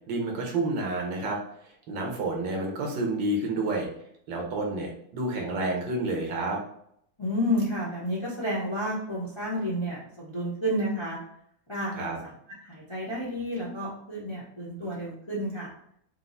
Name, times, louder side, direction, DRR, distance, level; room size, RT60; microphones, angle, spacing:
voice 1, 0.1-1.4 1.9-3.9 4.3-6.6 11.9-12.2, right 2 dB, 80° right, 0 dB, 1.6 m, -29 dB
voice 2, 7.2-11.2 11.7-12.3 12.6-15.7, equal, 25° left, -7 dB, 0.7 m, -31 dB
4.5 x 2.1 x 3.8 m, 0.70 s
omnidirectional pair, 2.0 m